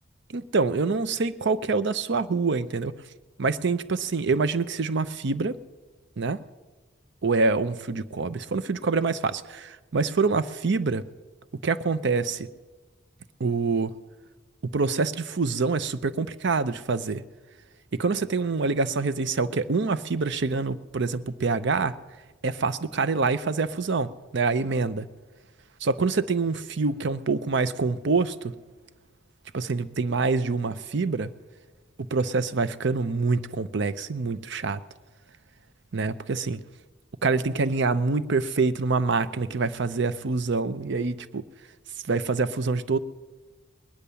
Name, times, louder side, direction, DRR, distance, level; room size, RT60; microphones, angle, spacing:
voice 1, 0.3-2.9 3.4-5.6 6.2-6.4 7.2-11.0 11.6-12.5 13.4-13.9 14.7-17.2 17.9-22.0 22.4-25.1 25.8-28.5 29.5-31.3 32.0-34.8 35.9-36.6 37.2-41.4 42.1-43.0, right 4 dB, 60° right, 14 dB, 0.6 m, -26 dB
20.5 x 10.0 x 6.9 m, 1.3 s
head